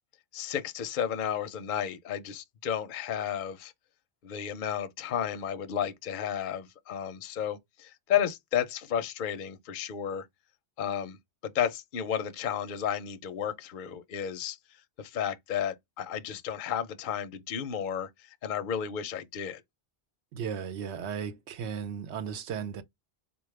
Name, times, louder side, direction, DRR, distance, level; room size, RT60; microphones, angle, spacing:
voice 1, 0.3-3.7 4.2-10.3 10.8-11.2 11.4-14.6 15.0-19.6, left 9 dB, 60° left, 0.6 m, -32 dB
voice 2, 20.3-22.8, right 7 dB, 80° right, 0.9 m, -35 dB
4.0 x 2.3 x 3.1 m
omnidirectional pair, 1.1 m